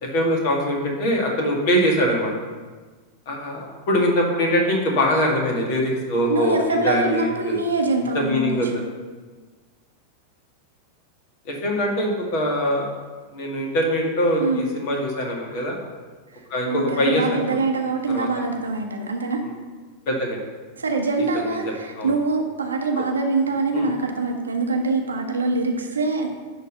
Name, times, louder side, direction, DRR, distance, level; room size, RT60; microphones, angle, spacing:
voice 1, 0.0-2.3 3.3-7.6 8.1-8.7 11.5-12.9 13.3-15.8 16.5-17.4 18.1-18.3 19.4-19.5 20.1-20.4 21.2-21.6 22.0-22.1 23.7-23.9, equal, 45° left, 0 dB, 2.1 m, -23 dB
voice 2, 6.3-8.8 14.4-14.6 16.7-19.4 20.8-26.3, right 3 dB, 75° right, 3 dB, 1.1 m, -24 dB
10.5 x 3.9 x 6.6 m, 1.4 s
figure-of-eight pair, 90°, 0 cm